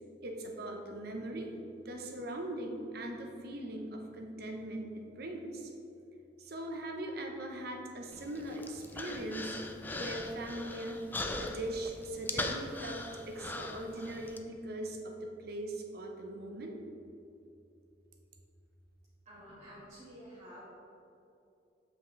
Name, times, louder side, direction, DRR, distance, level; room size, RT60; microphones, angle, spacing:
voice 1, 0.2-1.5 1.8-5.7 6.4-9.6 9.9-11.0 11.4-16.8, right 1 dB, 60° right, 2 dB, 0.8 m, -40 dB
Human voice, 8.1-14.4, left 2 dB, 10° left, 0.3 m, -40 dB
voice 2, 19.2-20.6, equal, 40° right, -9 dB, 1.5 m, -51 dB
7.3 x 5.9 x 3.2 m, 2.8 s
head